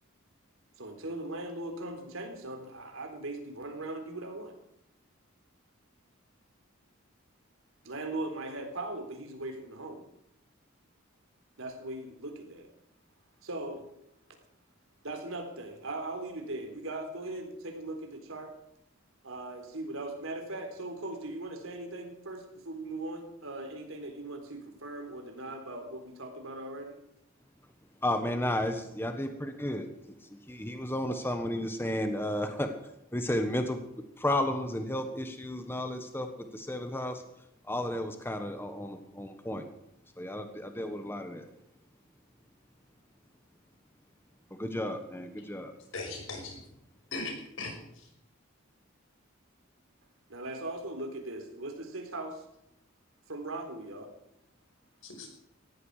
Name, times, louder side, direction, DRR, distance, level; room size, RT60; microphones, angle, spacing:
voice 1, 0.8-4.5 7.8-10.0 11.6-12.7 13.4-13.8 15.0-18.5 19.2-27.0 50.3-52.4 53.3-54.1, right 2 dB, 85° right, 4 dB, 4.0 m, -39 dB
voice 2, 28.0-29.9 30.5-32.7 33.1-36.3 36.5-37.2 37.7-39.6 40.2-41.5 44.6-45.7, left 1 dB, 10° left, 6 dB, 1.3 m, -33 dB
voice 3, 45.9-46.6 47.1-48.1 55.0-55.3, left 3 dB, 75° left, 3 dB, 5.5 m, -39 dB
19.0 x 14.5 x 5.0 m, 0.79 s
head